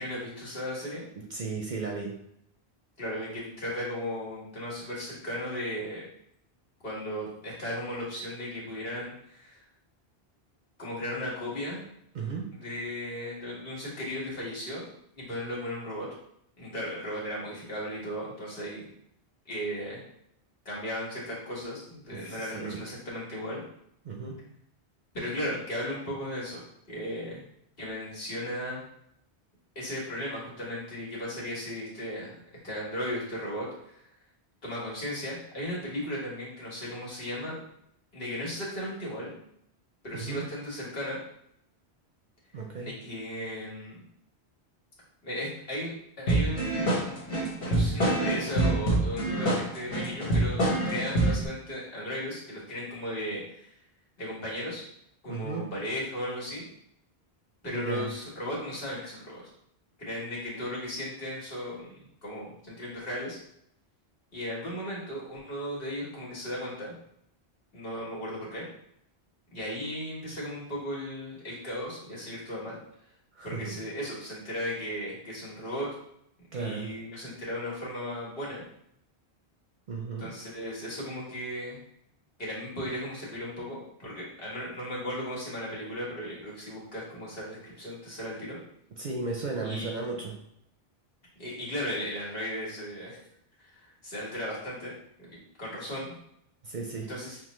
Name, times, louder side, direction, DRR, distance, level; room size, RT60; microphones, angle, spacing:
voice 1, 0.0-1.0 3.0-6.1 6.8-9.6 10.8-11.8 12.5-16.1 16.6-18.9 19.4-20.0 20.6-23.6 25.1-27.4 27.8-28.8 29.7-32.4 32.6-34.0 34.6-37.6 38.1-39.4 40.0-41.2 42.8-44.1 45.2-47.2 47.6-53.7 54.2-54.8 55.2-56.6 57.6-59.4 60.0-63.4 64.3-66.9 67.7-68.7 69.5-72.8 73.4-75.9 76.5-78.6 80.2-81.8 82.4-88.6 89.6-90.1 91.4-93.2 93.7-94.9 95.2-96.1 97.1-97.4, equal, 60° left, -5 dB, 1.6 m, -36 dB
voice 2, 1.1-2.2 12.1-12.5 22.1-22.8 24.0-24.4 40.1-40.5 42.5-42.9 55.3-55.7 57.7-58.1 73.3-73.8 76.5-76.9 79.9-80.3 89.0-90.4 96.6-97.1, right 4 dB, 55° right, 1 dB, 0.6 m, -35 dB
sound 1, 46.3-51.5, right 2 dB, 80° left, 1.4 m, -26 dB
5.9 x 2.2 x 3.0 m, 0.74 s
omnidirectional pair, 1.1 m